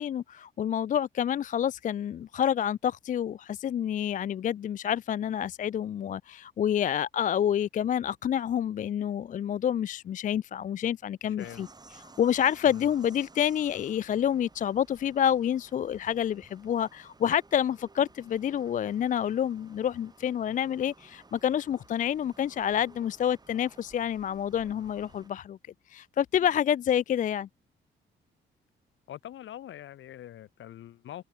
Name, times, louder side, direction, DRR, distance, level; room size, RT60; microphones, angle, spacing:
voice 1, 0.0-11.7 12.2-25.6 25.9-27.5, left 9 dB, 40° left, 0.4 m, -28 dB
voice 2, 11.2-11.7 12.6-12.9 29.1-31.2, left 12 dB, 75° left, 4.9 m, -44 dB
sound 1, 11.4-25.3, right 3 dB, 20° right, 2.6 m, -56 dB
cardioid pair, 90°, 20 cm